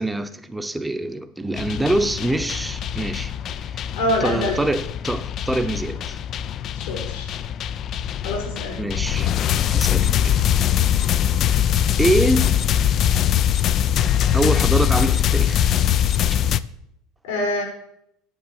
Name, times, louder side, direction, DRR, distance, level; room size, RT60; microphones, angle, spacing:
voice 1, 0.0-3.9 4.2-6.2 8.8-9.3 9.6-10.4 12.0-12.6 14.3-15.7, right 1 dB, 5° right, 0.9 m, -24 dB
sound 1, 1.6-16.6, left 10 dB, 40° left, 0.5 m, -22 dB
voice 2, 3.9-4.6 6.8-7.4 8.2-8.8 17.2-17.6, left 1 dB, 85° left, 5.5 m, -25 dB
9.7 x 7.4 x 7.4 m
supercardioid pair, 120°, 0 cm